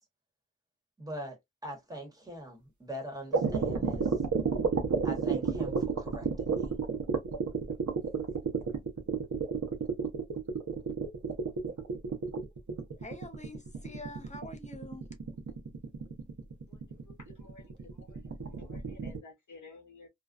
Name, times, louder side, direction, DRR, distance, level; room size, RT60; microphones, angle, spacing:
voice 1, 1.0-4.1 5.0-6.7, equal, 10° right, 1.1 m, -42 dB
sound 1, 3.3-19.2, right 5 dB, 75° right, 0.8 m, -31 dB
voice 2, 13.0-15.0, left 1 dB, 25° left, 0.7 m, -45 dB
voice 3, 16.7-20.1, left 3 dB, 85° left, 0.7 m, -54 dB
2.5 x 2.2 x 2.3 m
wide cardioid pair, 85°, 30 cm